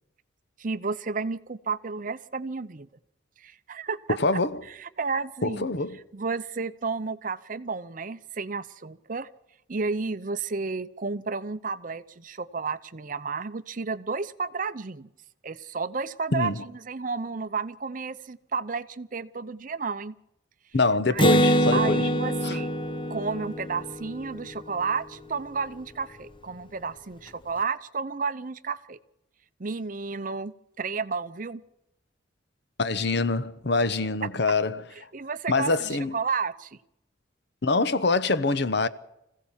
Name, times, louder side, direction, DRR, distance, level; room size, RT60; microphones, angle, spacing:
voice 1, 0.6-2.9 3.4-4.2 4.7-5.7 6.1-9.3 9.7-15.1 15.4-20.1 21.1-21.2 21.7-22.7 23.1-29.0 29.6-31.6 35.1-36.8, right 4 dB, 45° right, 0.7 m, -32 dB
voice 2, 4.2-4.6 5.4-6.0 16.3-16.6 20.7-22.1 22.4-22.6 32.8-34.8 35.5-36.2 37.6-38.9, left 3 dB, 60° left, 1.0 m, -25 dB
Acoustic guitar, 21.2-24.8, equal, 25° left, 1.0 m, -25 dB
25.5 x 16.0 x 7.3 m
head